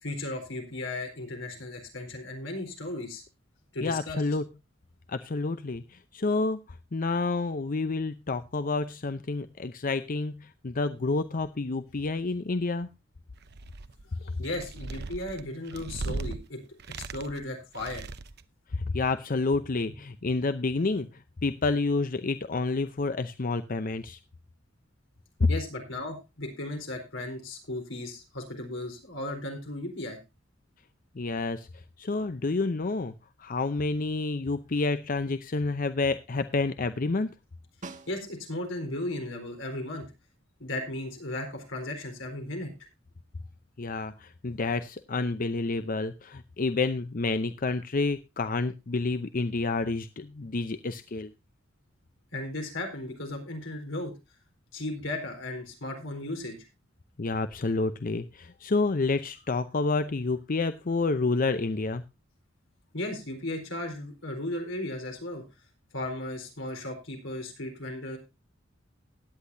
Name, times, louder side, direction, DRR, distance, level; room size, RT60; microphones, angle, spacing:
voice 1, 0.0-3.2 3.7-4.2 14.2-16.6 17.0-18.1 25.5-30.2 38.1-40.0 40.6-42.7 52.3-54.1 54.7-56.6 62.9-65.4 65.9-68.2, left 1 dB, 85° left, 3 dB, 4.2 m, -35 dB
voice 2, 3.8-4.4 5.1-6.6 6.9-12.9 18.7-24.2 25.4-25.5 31.2-31.7 32.0-33.1 33.4-37.3 43.8-51.3 57.2-62.0, left 3 dB, 45° left, 11 dB, 0.6 m, -29 dB
sound 1, 13.4-14.0 14.4-16.4 16.8-17.4 17.7-18.4, right 3 dB, 55° right, 0.8 m, -37 dB
Snare drum, 37.8-38.7 43.2-43.3, right 3 dB, 40° right, 1.4 m, -45 dB
16.5 x 9.9 x 2.7 m, 0.26 s
head